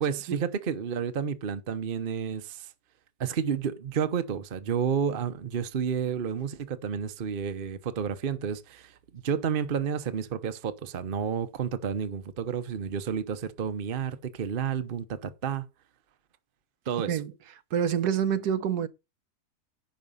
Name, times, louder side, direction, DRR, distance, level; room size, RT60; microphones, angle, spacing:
voice 1, 0.0-2.7 3.2-15.7 16.9-17.2, right 7 dB, 40° right, 0.9 m, -31 dB
voice 2, 17.7-18.9, right 8 dB, 75° right, 1.4 m, -26 dB
10.5 x 6.3 x 5.5 m
omnidirectional pair, 1.7 m